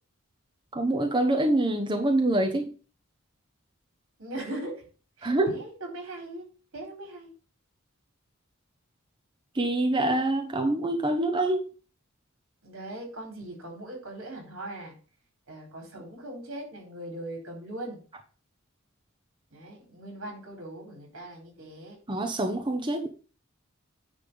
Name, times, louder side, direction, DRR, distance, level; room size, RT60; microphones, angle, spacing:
voice 1, 0.7-2.7 5.2-5.6 9.5-11.7 22.1-23.1, right 1 dB, 25° right, 4 dB, 0.9 m, -25 dB
voice 2, 4.2-4.9 5.2-6.4 6.7-7.3 12.6-14.9 15.5-18.0 19.5-22.0, right 1 dB, 80° right, 1 dB, 4.2 m, -40 dB
9.7 x 3.5 x 6.8 m, 0.38 s
head